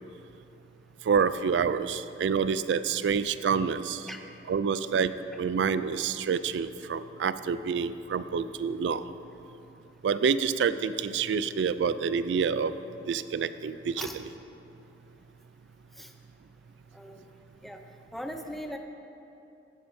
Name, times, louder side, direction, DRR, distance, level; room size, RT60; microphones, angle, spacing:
voice 1, 1.1-4.0 4.5-5.1 5.4-9.1 10.0-12.7 13.1-13.9, right 6 dB, 80° right, 13 dB, 0.3 m, -27 dB
voice 2, 16.9-17.3 17.6-18.8, equal, ahead, 4 dB, 0.6 m, -40 dB
15.5 x 8.6 x 2.7 m, 2.8 s
head